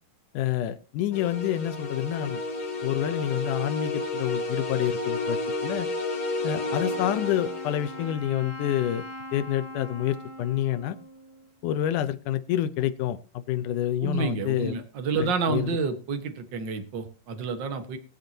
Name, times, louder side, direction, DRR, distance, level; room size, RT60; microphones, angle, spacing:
voice 1, 0.3-2.4 2.8-5.9 6.4-9.1 9.3-11.0 11.6-14.8 15.2-15.8, left 12 dB, 70° left, 12 dB, 2.1 m, -28 dB
sound 1, 1.1-8.1, left 2 dB, 50° left, 4.6 m, -31 dB
Wind instrument woodwind instrument, 6.4-12.1, equal, 15° right, 0.9 m, -42 dB
voice 2, 14.0-18.0, right 5 dB, 55° right, 8 dB, 1.3 m, -29 dB
22.0 x 7.9 x 2.9 m, 0.34 s
omnidirectional pair, 4.2 m